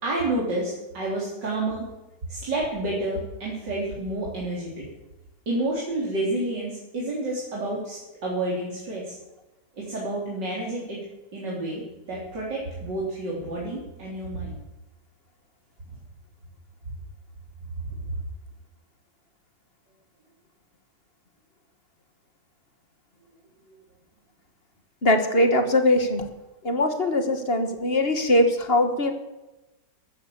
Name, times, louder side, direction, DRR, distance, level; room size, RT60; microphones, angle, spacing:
voice 1, 0.0-1.9 2.3-4.8 5.5-9.2 9.8-11.0 11.3-14.6 17.9-18.0, right 2 dB, 80° right, -5 dB, 4.3 m, -29 dB
voice 2, 25.0-26.3 26.6-29.1, left 1 dB, 35° left, 7 dB, 1.9 m, -21 dB
14.5 x 13.5 x 7.1 m, 1.0 s
omnidirectional pair, 1.9 m